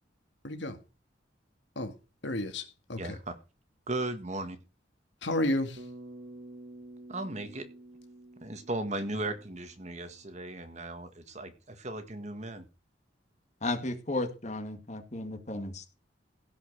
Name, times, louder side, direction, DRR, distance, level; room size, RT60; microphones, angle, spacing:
voice 1, 0.4-0.8 1.8-1.9 2.2-3.2 5.2-5.9, left 1 dB, 70° left, 2.0 m, -32 dB
voice 2, 3.0-3.3 3.9-4.6 7.1-7.7 8.4-12.6, right 2 dB, 40° right, 1.7 m, -36 dB
Bass guitar, 5.8-10.1, right 1 dB, 70° right, 2.6 m, -49 dB
voice 3, 13.6-15.9, left 2 dB, 40° left, 2.0 m, -34 dB
16.5 x 5.7 x 6.5 m
head